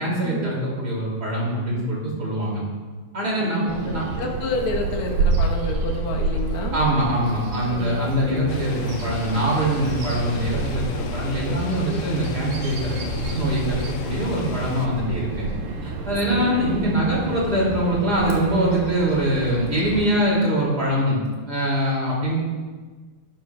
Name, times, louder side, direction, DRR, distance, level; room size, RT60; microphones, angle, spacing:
voice 1, 0.0-2.7 3.1-4.0 6.7-13.0 13.3-15.5 15.8-22.4, right 1 dB, 30° right, -5 dB, 2.8 m, -23 dB
voice 2, 3.3-6.8 7.7-8.4 11.2-11.5 11.9-12.1 16.3-16.5, left 2 dB, 60° left, 0 dB, 1.5 m, -30 dB
Bird vocalization bird call bird song, 3.7-20.1, right 3 dB, 90° right, 3.2 m, -29 dB
sound 1, 8.5-14.9, left 8 dB, 80° left, 2.2 m, -35 dB
12.0 x 11.5 x 2.3 m, 1.4 s
omnidirectional pair, 3.9 m